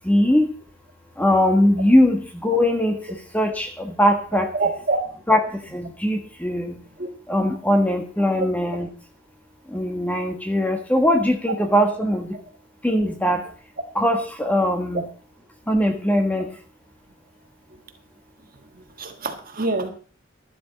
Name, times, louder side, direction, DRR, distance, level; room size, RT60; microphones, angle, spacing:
voice 1, 0.0-0.5 1.2-3.0 3.3-4.5 5.3-5.4 5.7-6.8 7.3-8.9 9.7-12.4 12.8-13.5 13.9-15.1 15.7-16.5, equal, 10° left, 4 dB, 1.5 m, -20 dB
voice 2, 4.5-5.0 7.0-7.1 19.0-19.9, right 3 dB, 50° right, 5 dB, 1.7 m, -25 dB
12.5 x 11.5 x 4.2 m, 0.41 s
head